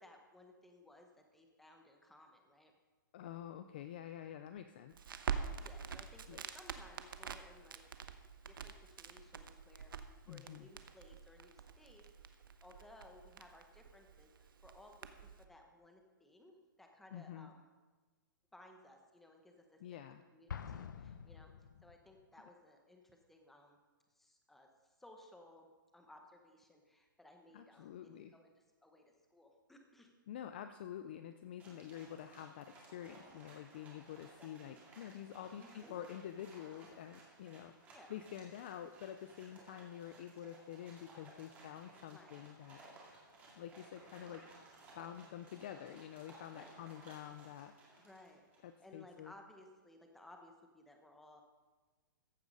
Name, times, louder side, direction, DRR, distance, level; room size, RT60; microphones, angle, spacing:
voice 1, 0.0-2.7 5.5-7.9 8.4-12.0 12.6-17.7 18.5-20.0 20.3-23.8 24.1-25.7 25.9-30.1 34.4-34.9 35.6-36.0 37.9-38.2 42.0-42.4 42.8-43.0 46.5-46.7 48.0-51.4, left 1 dB, ahead, 3 dB, 0.9 m, -60 dB
voice 2, 3.1-5.1 6.3-6.4 10.3-10.7 17.1-17.5 19.8-20.2 27.5-28.3 30.3-42.8 43.6-44.4 45.0-47.7 48.6-49.3, left 10 dB, 25° left, 9 dB, 0.4 m, -48 dB
Crackle, 4.9-15.4, right 6 dB, 75° right, 1.0 m, -46 dB
Explosion, 20.5-22.2, left 7 dB, 60° left, 0.8 m, -47 dB
sound 1, 31.6-48.8, right 2 dB, 15° right, 2.2 m, -59 dB
15.0 x 8.2 x 5.4 m, 1.3 s
hypercardioid pair, 170°, 12 cm